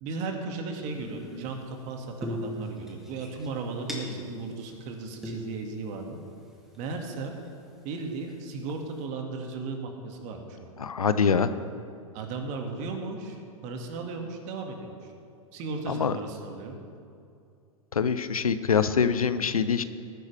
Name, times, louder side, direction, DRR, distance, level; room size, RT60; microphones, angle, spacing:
voice 1, 0.0-6.2 6.8-7.3 7.8-10.7 12.1-15.1 15.5-16.8, right 3 dB, 40° right, 3 dB, 2.0 m, -36 dB
sound 1, 0.8-1.8 2.2-4.4 4.8-4.9 5.2-6.8 7.4-7.5 8.3-8.7, left 1 dB, ahead, 2.3 m, -39 dB
voice 2, 10.8-11.5 15.9-16.1 17.9-19.8, left 6 dB, 85° left, 12 dB, 0.6 m, -24 dB
19.5 x 10.0 x 3.4 m, 2.4 s
figure-of-eight pair, 100°, 18 cm